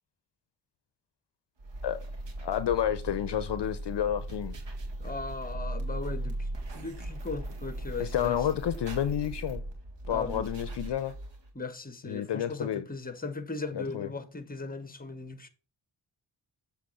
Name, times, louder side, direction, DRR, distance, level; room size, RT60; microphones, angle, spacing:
sound 1, 1.6-11.5, right 1 dB, 60° right, 1.9 m, -38 dB
voice 1, 2.4-4.6 8.0-9.6 10.1-11.1 12.0-12.8 13.7-14.1, left 10 dB, 60° left, 0.7 m, -30 dB
voice 2, 5.0-6.5 6.7-8.4 10.1-10.4 11.5-15.5, left 3 dB, 20° left, 1.1 m, -38 dB
7.4 x 3.5 x 5.8 m
supercardioid pair, 40°, 48 cm